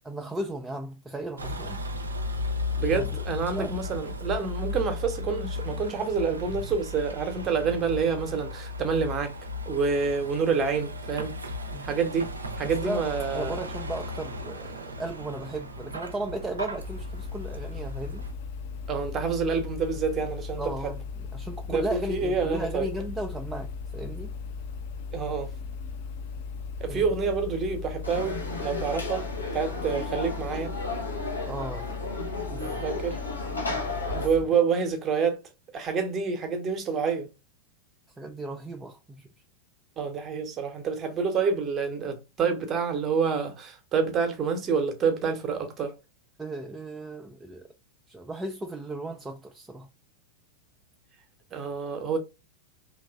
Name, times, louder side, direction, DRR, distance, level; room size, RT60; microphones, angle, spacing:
voice 1, 0.1-1.8 2.9-3.1 3.6-3.8 11.7-11.8 12.8-13.1 13.3-18.3 20.6-21.0 21.3-24.3 26.9-27.0 31.5-31.9 32.5-32.7 34.1-34.3 38.2-39.3 46.4-47.7 48.1-49.9, right 1 dB, 10° right, 0.3 m, -35 dB
Vehicle, 1.4-18.3, left 2 dB, 75° right, 0.5 m, -35 dB
voice 2, 2.8-9.3 9.7-11.4 11.8-12.3 12.6-13.6 18.9-20.9 21.7-22.9 25.1-25.5 26.8-30.7 32.8-33.2 34.1-35.4 35.7-37.3 40.0-45.9 51.5-52.2, right 5 dB, 25° right, 0.7 m, -28 dB
sound 1, 16.8-34.4, left 5 dB, 50° left, 0.4 m, -37 dB
Conversation / Crowd, 28.0-34.3, left 2 dB, 80° left, 0.7 m, -34 dB
3.0 x 2.3 x 2.3 m
figure-of-eight pair, 90°, 0 cm